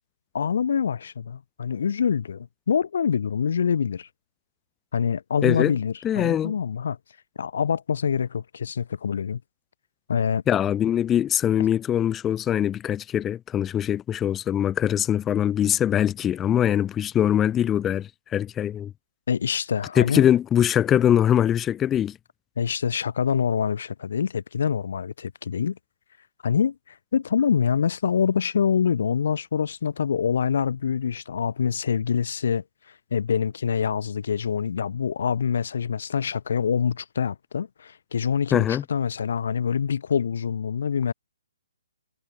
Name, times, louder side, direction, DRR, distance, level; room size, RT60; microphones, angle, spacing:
voice 1, 0.3-4.1 4.9-7.0 7.4-9.4 10.1-10.4 19.3-20.2 22.6-25.8 26.4-26.7 27.1-32.6 33.1-41.1, left 7 dB, 60° left, 3.0 m, -25 dB
voice 2, 5.4-5.7 6.0-6.5 10.5-18.9 20.0-22.2 38.5-38.8, left 10 dB, 10° left, 2.6 m, -22 dB
hypercardioid pair, 170°, 0 cm